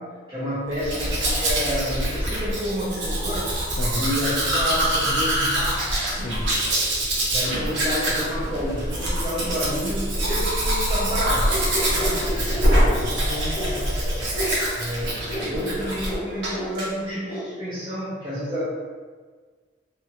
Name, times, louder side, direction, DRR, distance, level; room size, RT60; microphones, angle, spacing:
voice 1, 0.0-3.5 3.9-6.0 7.3-11.6 14.7-18.6, equal, 20° right, -10 dB, 0.5 m, -29 dB
Domestic sounds home sounds, 0.7-16.2 16.4-16.9, right 1 dB, 75° right, 0.8 m, -24 dB
voice 2, 3.8-4.1 6.1-6.5 11.9-14.0, left 1 dB, 35° left, 1 dB, 0.3 m, -34 dB
sound 1, 11.5-13.0 13.5-13.7 14.3-14.5 15.3-15.5 16.1-16.2 16.5-16.7 17.3-17.4, equal, 70° left, 0.8 m, -30 dB
2.9 x 2.3 x 2.8 m, 1.5 s
head